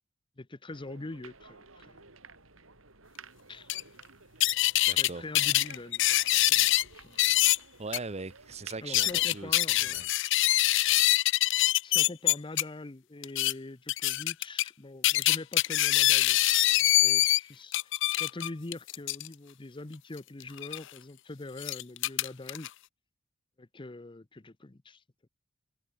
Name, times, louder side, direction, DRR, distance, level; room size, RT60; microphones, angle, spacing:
voice 1, 0.4-2.0 3.5-3.7 4.9-7.2 8.8-10.0 11.8-22.7 23.6-25.3, left 2 dB, 25° left, 0.7 m, -44 dB
sound 1, 0.7-10.1, right 4 dB, 90° right, 7.3 m, -54 dB
sound 2, 3.7-3.8 4.4-5.1 5.4-6.8 7.2-7.6 7.9-8.0 8.7-12.6 13.2-13.5 13.9-14.7 15.0-17.4 17.7-19.3 20.6-20.8 21.6-22.7, left 16 dB, 65° left, 0.5 m, -24 dB
voice 2, 4.9-5.2 7.8-10.1, right 3 dB, 35° right, 1.0 m, -40 dB
head